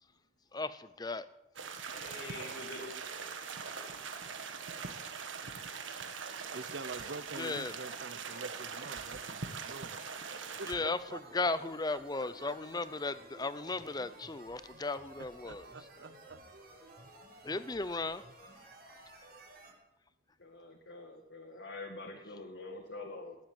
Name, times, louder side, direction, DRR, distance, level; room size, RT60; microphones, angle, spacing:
voice 1, 0.5-1.3 7.4-7.8 10.7-15.7 17.4-18.2, left 3 dB, 20° left, 14 dB, 0.6 m, -36 dB
sound 1, 1.6-10.8, right 5 dB, 85° right, 1.6 m, -42 dB
voice 2, 1.9-3.0 20.4-23.4, left 2 dB, 70° left, 0 dB, 2.2 m, -45 dB
voice 3, 6.5-10.0 10.6-12.0 12.4-12.5 15.2-16.4, right 3 dB, 70° right, 15 dB, 0.8 m, -46 dB
sound 2, 10.7-19.7, right 1 dB, 50° right, 5.5 m, -54 dB
19.0 x 7.9 x 9.2 m, 0.96 s
head